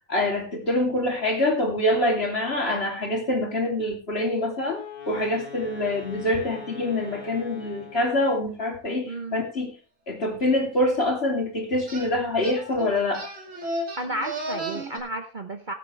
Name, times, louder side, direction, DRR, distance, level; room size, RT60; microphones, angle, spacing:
voice 1, 0.1-9.8 10.1-13.3, left 1 dB, 45° left, 2 dB, 3.2 m, -25 dB
Wind instrument woodwind instrument, 4.7-8.3, left 3 dB, 30° left, 4.1 m, -41 dB
voice 2, 9.1-9.4 14.0-15.7, right 1 dB, 40° right, 6 dB, 1.0 m, -32 dB
sound 1, 11.9-12.1 12.4-15.0, right 1 dB, 60° right, 2.9 m, -33 dB
18.0 x 8.3 x 3.3 m, 0.31 s
omnidirectional pair, 1.5 m